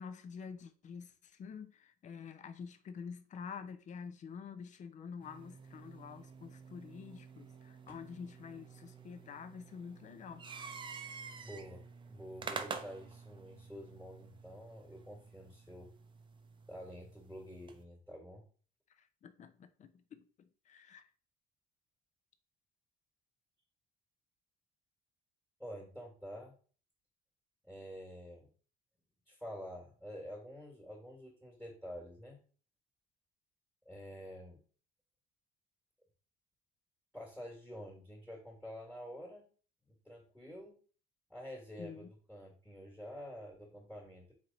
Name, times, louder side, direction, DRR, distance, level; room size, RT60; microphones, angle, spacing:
voice 1, 0.0-10.5 19.0-21.0 41.8-42.1, left 6 dB, 45° left, 0.6 m, -48 dB
sound 1, 5.2-17.8, right 5 dB, 30° right, 0.5 m, -49 dB
voice 2, 11.4-15.9 16.7-18.4 25.6-26.5 27.6-28.5 29.3-32.4 33.8-34.6 37.1-39.4 39.8-40.8 41.3-44.3, equal, ahead, 1.6 m, -48 dB
4.3 x 3.1 x 3.9 m
cardioid pair, 110°, 17 cm